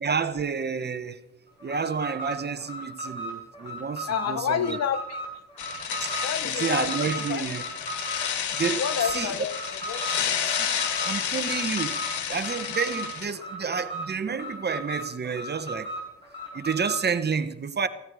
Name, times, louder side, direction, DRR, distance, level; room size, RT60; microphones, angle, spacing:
voice 1, 0.0-1.2 1.6-4.8 6.0-6.1 6.4-7.6 8.5-9.3 10.0-10.2 10.6-10.7 11.0-12.0 12.3-15.9 16.5-17.9, right 6 dB, 35° right, 1.2 m, -30 dB
Alarm, 1.6-17.1, right 1 dB, 15° left, 7.9 m, -37 dB
voice 2, 4.1-5.2 6.2-6.9 7.3-7.5 8.7-10.1, left 8 dB, 60° left, 1.2 m, -29 dB
sound 1, 5.6-13.3, left 8 dB, 75° left, 1.9 m, -30 dB
17.5 x 15.5 x 5.0 m
cardioid pair, 90°, 30 cm